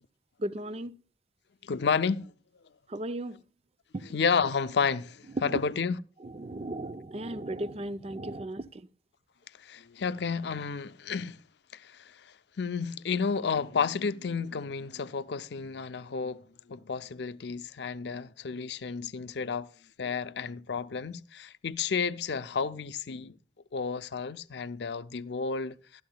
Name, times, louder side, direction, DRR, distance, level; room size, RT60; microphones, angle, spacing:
voice 1, 0.4-0.9 2.9-3.4 3.9-4.0 5.4-5.6 6.2-8.9, right 1 dB, 30° right, 0.5 m, -35 dB
voice 2, 1.6-2.3 4.1-6.0 9.6-11.4 11.7-12.0 12.6-16.4 16.7-19.7 20.0-23.4 23.7-26.0, left 5 dB, 65° left, 0.5 m, -31 dB
14.5 x 12.0 x 2.2 m
head